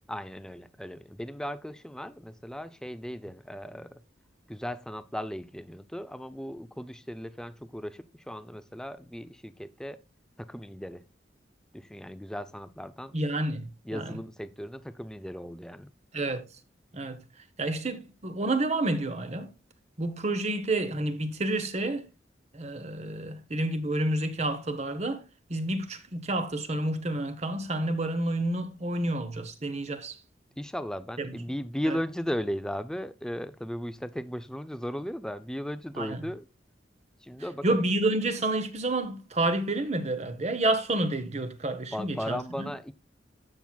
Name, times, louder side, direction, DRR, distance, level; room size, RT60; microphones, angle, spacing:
voice 1, 0.1-4.0 4.5-10.0 10.4-11.0 11.7-13.2 13.8-15.9 30.6-36.5 37.2-37.7 41.9-42.9, equal, 5° left, 0.5 m, -36 dB
voice 2, 13.1-14.1 16.1-16.4 16.9-17.2 17.6-19.5 20.0-22.1 22.5-25.2 25.5-30.2 31.2-31.3 31.9-32.0 36.0-36.2 37.6-42.7, right 2 dB, 40° right, 1.0 m, -29 dB
14.0 x 6.0 x 2.3 m
head